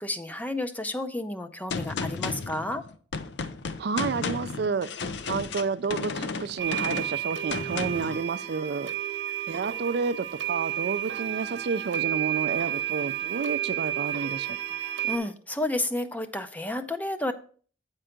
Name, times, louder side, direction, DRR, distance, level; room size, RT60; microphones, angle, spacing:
voice 1, 0.0-2.8 14.8-17.3, left 1 dB, 10° left, 9 dB, 0.5 m, -31 dB
Gunshot gunfire, 1.7-8.2, left 4 dB, 65° left, 0.5 m, -33 dB
voice 2, 3.8-4.9 5.3-8.9 9.5-14.8, right 5 dB, 60° right, 13 dB, 0.4 m, -30 dB
sound 1, 6.6-15.2, right 12 dB, 75° right, 0.9 m, -31 dB
8.7 x 4.5 x 5.1 m, 0.44 s
head